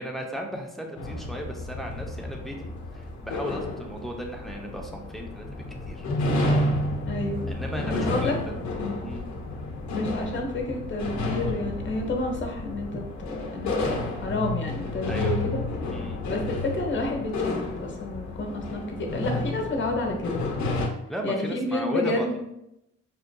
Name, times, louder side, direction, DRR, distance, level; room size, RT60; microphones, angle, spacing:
voice 1, 0.0-6.1 7.5-8.6 9.0-9.2 15.1-15.5 15.9-16.2 21.1-22.4, right 1 dB, ahead, 1 dB, 0.6 m, -36 dB
sound 1, 1.0-20.9, left 2 dB, 70° left, 0.8 m, -31 dB
voice 2, 7.1-7.5 7.8-8.4 8.7-9.0 9.9-15.6 16.3-20.4 21.2-22.4, left 2 dB, 40° left, 2 dB, 0.9 m, -30 dB
5.5 x 2.5 x 2.2 m, 0.83 s
cardioid pair, 90°, 30 cm